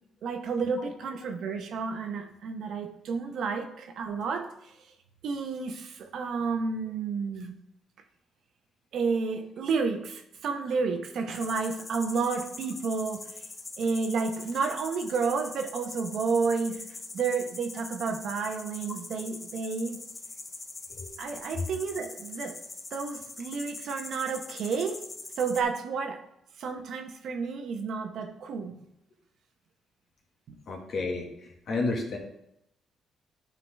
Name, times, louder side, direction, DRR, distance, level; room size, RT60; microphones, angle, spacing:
voice 1, 0.2-4.8 5.2-7.6 8.9-13.4 13.8-16.8 17.1-20.0 21.2-22.6 22.9-25.1 25.4-26.2 26.6-28.8 30.5-30.6, right 5 dB, 70° right, 6 dB, 0.9 m, -31 dB
sound 1, 11.3-25.6, left 3 dB, 30° left, 0.7 m, -43 dB
voice 2, 30.7-32.2, left 3 dB, 60° left, 1 dB, 1.7 m, -32 dB
10.5 x 3.9 x 3.4 m, 0.80 s
cardioid pair, 90°, 0 cm